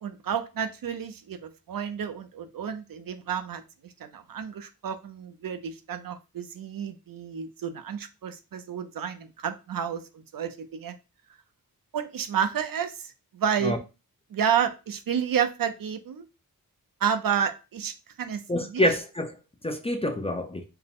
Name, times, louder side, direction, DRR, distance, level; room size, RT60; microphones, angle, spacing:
voice 1, 0.0-3.6 4.0-10.9 11.9-13.8 14.3-16.3 17.0-17.9 18.2-18.8, right 8 dB, 65° right, 0.6 m, -30 dB
voice 2, 18.5-19.3 19.6-20.6, left 1 dB, 15° left, 0.4 m, -26 dB
4.6 x 2.1 x 3.5 m
wide cardioid pair, 105°, 36 cm